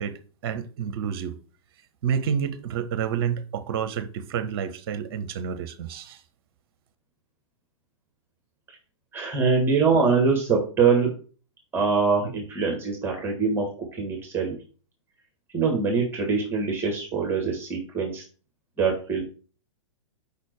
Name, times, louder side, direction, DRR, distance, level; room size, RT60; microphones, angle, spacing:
voice 1, 0.0-1.3 2.0-6.2, right 8 dB, 45° right, 0.8 m, -29 dB
voice 2, 9.1-11.1 11.7-13.7 13.9-14.6 15.5-18.2 18.8-19.2, right 5 dB, 15° right, 1.8 m, -23 dB
5.2 x 4.3 x 4.6 m
figure-of-eight pair, 110°, 17 cm